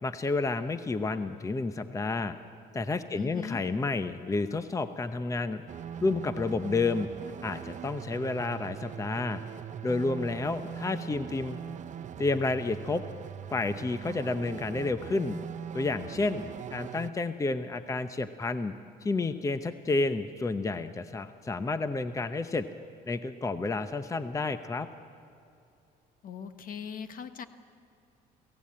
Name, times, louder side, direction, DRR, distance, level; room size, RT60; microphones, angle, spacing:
voice 1, 0.0-2.3 2.7-5.6 6.0-7.1 7.4-9.4 9.8-11.6 12.2-13.0 13.5-15.4 15.7-18.7 19.0-22.7 23.1-24.9, left 3 dB, 20° left, 10 dB, 0.8 m, -30 dB
voice 2, 3.1-3.6 26.2-27.4, left 7 dB, 55° left, 10 dB, 1.3 m, -39 dB
sound 1, 5.7-17.1, right 8 dB, 45° right, 0.9 m, -41 dB
23.5 x 17.0 x 8.7 m, 2.6 s
cardioid pair, 110°, 17 cm